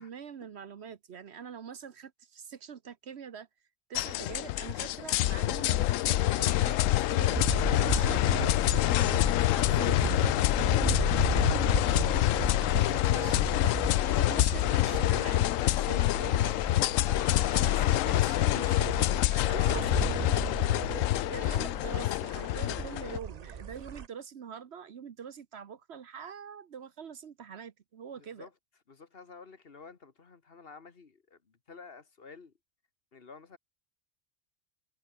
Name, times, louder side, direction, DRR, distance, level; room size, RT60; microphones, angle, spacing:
voice 1, 0.0-3.5 3.9-8.7 9.6-10.1 12.7-13.5 14.0-16.4 17.3-19.0 19.4-20.1 20.9-28.5, right 7 dB, 60° right, 1.1 m, -44 dB
sound 1, 4.0-23.2, left 14 dB, 85° left, 1.0 m, -26 dB
sound 2, 7.3-24.1, right 7 dB, 40° right, 0.6 m, -37 dB
voice 2, 7.8-8.3 8.6-13.1 13.9-14.5 15.7-17.8 19.3-19.8 20.3-21.3 28.2-28.5 28.9-32.5 33.1-33.6, left 4 dB, 50° left, 1.6 m, -48 dB
omnidirectional pair, 1.3 m